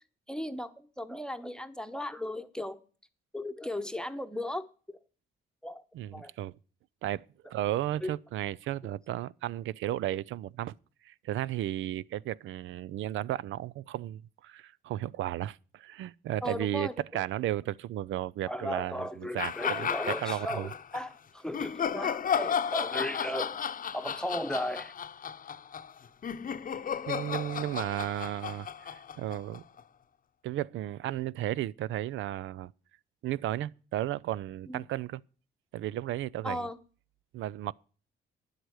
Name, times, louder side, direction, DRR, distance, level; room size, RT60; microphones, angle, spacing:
voice 1, 0.3-2.8 3.3-5.0 5.6-5.8 6.1-6.3 8.0-8.1 16.4-17.2 18.5-23.6 23.9-24.9 34.7-34.8 36.4-36.8, left 1 dB, 5° left, 1.0 m, -36 dB
voice 2, 5.9-6.5 7.0-10.7 11.0-20.7 27.1-29.6 30.4-32.7 33.2-35.2 35.7-36.7 37.3-37.7, right 13 dB, 75° right, 0.5 m, -34 dB
sound 1, 19.4-21.0 21.5-29.8, left 7 dB, 45° left, 0.8 m, -34 dB
10.5 x 7.9 x 6.4 m
cardioid pair, 90°, 20 cm